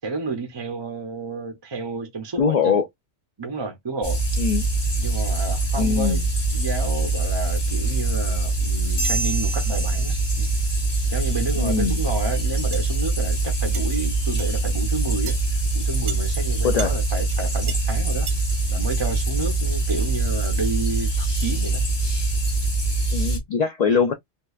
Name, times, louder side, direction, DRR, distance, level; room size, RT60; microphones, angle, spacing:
voice 1, 0.0-2.8 3.4-4.2 5.0-6.2 6.5-10.5 11.1-15.4 15.7-18.3 18.7-21.8, right 3 dB, 30° right, 0.5 m, -30 dB
voice 2, 2.4-2.9 4.4-4.6 5.8-6.2 11.6-12.0 16.6-16.9 23.1-24.1, left 6 dB, 55° left, 0.4 m, -22 dB
sound 1, 4.0-23.4, right 3 dB, 25° left, 0.8 m, -23 dB
sound 2, 9.0-10.8, right 2 dB, 85° left, 2.0 m, -31 dB
sound 3, 12.7-12.9 13.7-13.9 14.4-14.5 15.3-15.4 16.1-16.2 16.8-16.9 17.3-17.4 17.7-17.8 18.3-18.4, right 7 dB, 75° right, 1.0 m, -34 dB
4.4 x 2.5 x 2.3 m
omnidirectional pair, 1.3 m